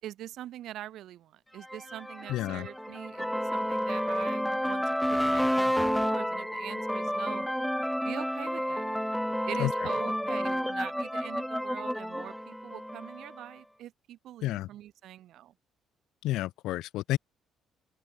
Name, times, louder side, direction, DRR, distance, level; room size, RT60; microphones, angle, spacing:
voice 1, 0.0-4.8 5.1-7.5 8.0-8.9 9.5-15.5, right 13 dB, 65° right, 4.0 m, -43 dB
sound 1, 1.6-13.4, equal, ahead, 2.5 m, -30 dB
voice 2, 2.3-2.7 9.6-9.7 14.4-14.7 16.2-17.2, left 16 dB, 85° left, 1.5 m, -30 dB
open air
cardioid pair, 160°, 0 cm